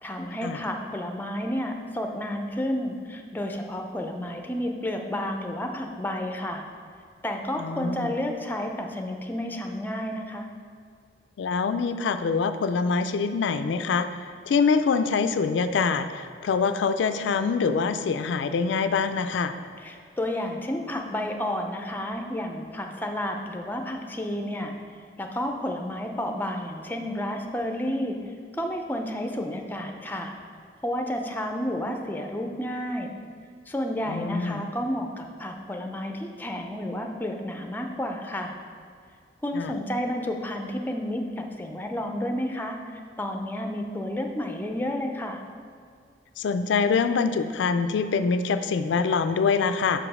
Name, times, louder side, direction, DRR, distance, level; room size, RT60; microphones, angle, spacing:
voice 1, 0.0-6.6 7.2-10.5 19.8-24.7 25.2-28.2 28.5-30.3 30.8-33.1 33.7-38.5 39.4-45.4, left 1 dB, 10° left, 3 dB, 0.5 m, -31 dB
voice 2, 7.6-8.1 11.4-14.1 14.5-19.5 34.1-34.6 39.5-39.7 46.4-50.0, left 5 dB, 85° left, 10 dB, 0.3 m, -25 dB
6.0 x 5.0 x 4.8 m, 2.2 s
head